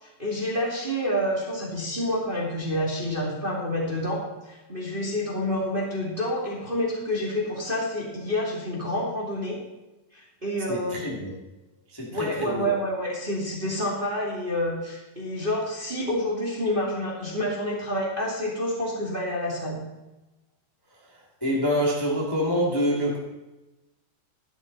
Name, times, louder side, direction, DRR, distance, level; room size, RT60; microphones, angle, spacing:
voice 1, 0.0-4.2 4.5-9.6 10.1-11.0 12.1-19.8, left 1 dB, 15° right, -4 dB, 1.8 m, -28 dB
voice 2, 10.7-11.3 11.9-12.7 21.1-23.2, equal, 10° left, -4 dB, 1.3 m, -26 dB
12.5 x 12.0 x 4.1 m, 1.0 s
omnidirectional pair, 4.9 m